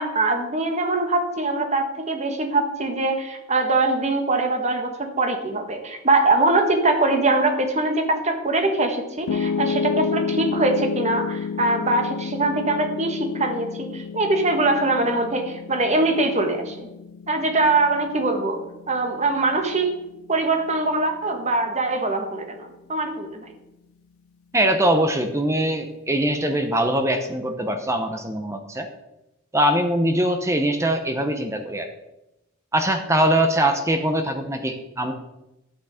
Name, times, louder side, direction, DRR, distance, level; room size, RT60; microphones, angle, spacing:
voice 1, 0.0-16.9 17.3-18.6 18.9-20.0 20.3-23.5, right 2 dB, 35° right, 5 dB, 1.6 m, -22 dB
Piano, 9.3-21.5, left 5 dB, 80° left, 0.4 m, -31 dB
voice 2, 24.5-28.9 29.5-31.9 32.7-35.1, right 1 dB, 15° right, 6 dB, 0.8 m, -22 dB
11.0 x 8.5 x 5.0 m, 0.93 s
head